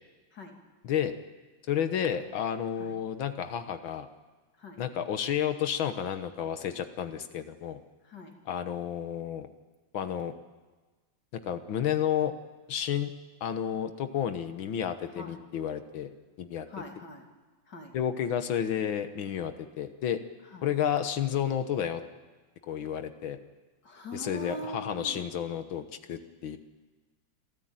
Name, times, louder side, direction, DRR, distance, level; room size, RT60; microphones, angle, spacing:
voice 1, 0.8-1.1 1.7-4.1 4.8-7.8 8.5-9.5 9.9-10.3 11.5-12.3 12.7-13.1 13.4-16.1 16.4-16.7 17.9-20.2 20.6-22.0 22.7-23.4 24.1-26.6, left 9 dB, 85° left, 9 dB, 1.9 m, -31 dB
voice 2, 16.7-17.3 17.7-17.9 20.5-20.6 23.8-25.2, left 1 dB, 60° left, 2 dB, 3.3 m, -42 dB
28.0 x 13.5 x 8.9 m, 1.3 s
omnidirectional pair, 2.1 m